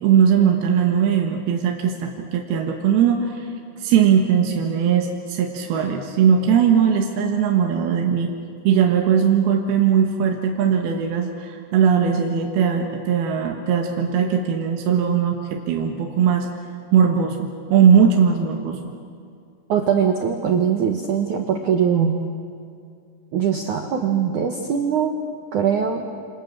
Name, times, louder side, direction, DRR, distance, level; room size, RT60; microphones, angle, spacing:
voice 1, 0.0-3.5 3.8-8.3 8.6-16.5 16.9-18.8, right 7 dB, 65° right, 2 dB, 2.9 m, -19 dB
voice 2, 19.7-22.2 23.3-25.1 25.5-26.0, right 7 dB, 85° right, 4 dB, 1.7 m, -21 dB
28.0 x 28.0 x 7.4 m, 2.3 s
omnidirectional pair, 5.6 m